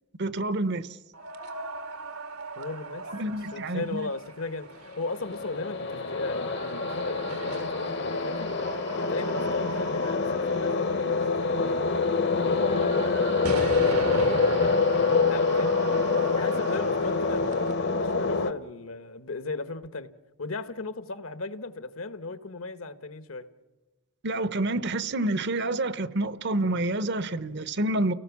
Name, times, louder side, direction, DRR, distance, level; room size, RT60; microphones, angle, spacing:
voice 1, 0.2-0.9 3.1-4.1 24.2-28.1, right 2 dB, 50° right, 0.8 m, -28 dB
sound 1, 1.1-17.7, right 3 dB, 90° right, 1.9 m, -39 dB
voice 2, 2.6-8.5 9.0-11.9 12.4-15.8 16.3-20.1 20.4-23.5, left 3 dB, 70° left, 1.3 m, -36 dB
sound 2, 5.0-18.5, left 4 dB, 50° left, 1.0 m, -26 dB
30.0 x 18.0 x 7.3 m
head